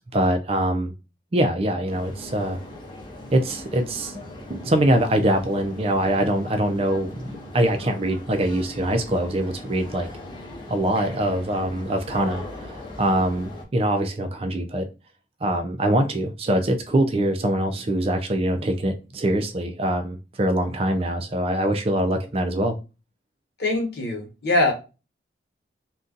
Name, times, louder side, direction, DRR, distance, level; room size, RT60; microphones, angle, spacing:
voice 1, 0.1-0.9 1.3-2.6 3.3-4.2 4.5-10.1 10.7-14.9 15.4-22.8, right 1 dB, 30° right, 0.4 m, -23 dB
sound 1, 1.9-13.6, left 1 dB, 25° left, 0.7 m, -39 dB
voice 2, 23.6-24.7, left 2 dB, 60° left, 1.2 m, -22 dB
2.6 x 2.3 x 3.8 m
head